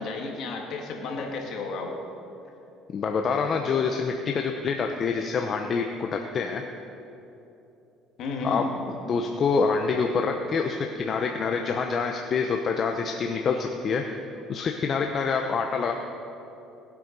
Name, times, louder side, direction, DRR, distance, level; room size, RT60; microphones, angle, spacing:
voice 1, 0.0-2.0 8.2-8.7, left 3 dB, 55° left, 1 dB, 2.2 m, -32 dB
voice 2, 2.9-6.6 8.4-8.6 9.1-14.0 14.5-15.9, left 5 dB, 40° left, 3 dB, 0.7 m, -26 dB
18.5 x 8.4 x 5.3 m, 2.9 s
cardioid pair, 130°, 0 cm